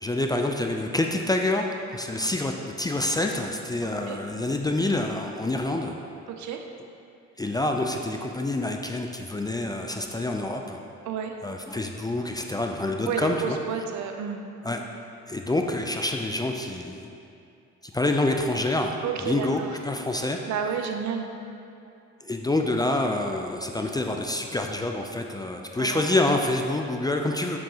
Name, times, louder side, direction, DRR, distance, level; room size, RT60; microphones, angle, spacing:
voice 1, 0.0-1.7 1.9-5.9 7.4-10.8 11.4-13.6 14.6-14.8 15.3-17.1 17.9-18.9 19.2-20.4 22.2-27.6, left 2 dB, 15° left, 2 dB, 0.4 m, -27 dB
voice 2, 3.8-4.2 6.3-6.7 11.1-11.3 13.1-14.4 19.0-19.7 20.5-21.3 25.8-26.3, right 7 dB, 70° right, 5 dB, 0.7 m, -31 dB
6.7 x 6.2 x 2.8 m, 2.6 s
cardioid pair, 90°, 30 cm